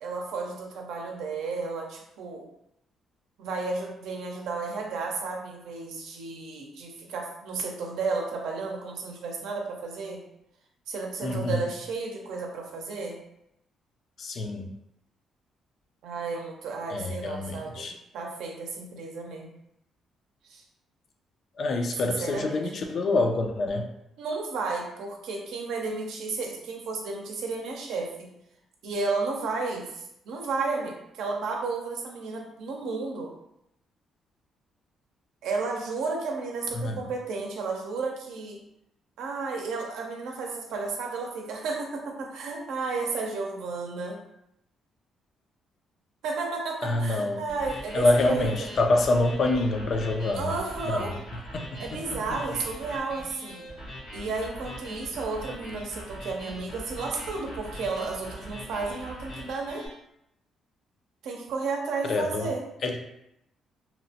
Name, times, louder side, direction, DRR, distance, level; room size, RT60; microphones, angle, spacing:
voice 1, 0.0-2.4 3.4-10.2 10.9-13.2 16.0-19.5 20.4-20.6 22.0-22.6 24.2-28.3 28.8-33.3 35.4-38.6 39.2-44.2 46.2-48.7 50.3-51.1 51.8-53.7 54.1-59.8 61.2-62.6, right 4 dB, 80° right, 1 dB, 0.5 m, -33 dB
voice 2, 11.2-11.6 14.2-14.7 16.9-17.9 21.6-23.9 36.7-37.0 46.8-47.4 47.9-50.6 50.9-51.1 51.5-52.2 62.0-62.5 62.8-63.0, left 2 dB, 55° left, 4 dB, 0.4 m, -26 dB
sound 1, 47.5-59.9, equal, 80° left, 1.2 m, -41 dB
2.8 x 2.1 x 2.7 m, 0.80 s
cardioid pair, 90°, 0 cm